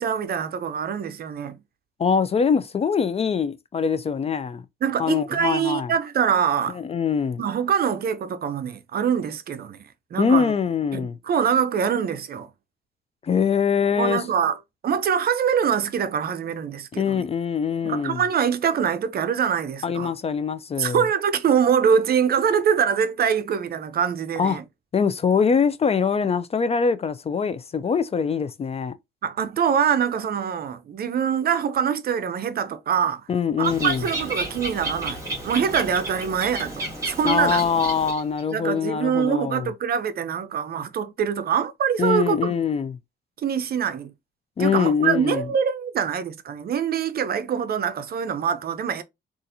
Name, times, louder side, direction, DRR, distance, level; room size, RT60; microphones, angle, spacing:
voice 1, 0.0-1.6 4.8-6.8 7.4-9.9 10.1-10.5 10.9-12.5 14.0-14.6 14.8-17.2 17.8-20.1 20.8-24.6 29.2-33.3 33.6-35.2 35.4-37.6 38.5-42.5 43.4-44.1 44.6-49.0, right 7 dB, 50° right, 0.5 m, -24 dB
voice 2, 2.0-4.6 5.0-5.9 6.8-7.4 10.2-11.2 13.2-14.2 17.0-18.2 19.8-21.0 24.4-24.6 24.9-28.9 33.3-34.0 37.2-39.7 42.0-42.9 44.6-45.4, left 6 dB, 30° left, 0.3 m, -23 dB
Bird, 33.6-38.4, right 2 dB, 15° right, 1.9 m, -31 dB
3.9 x 2.5 x 2.6 m
cardioid pair, 90°, 20 cm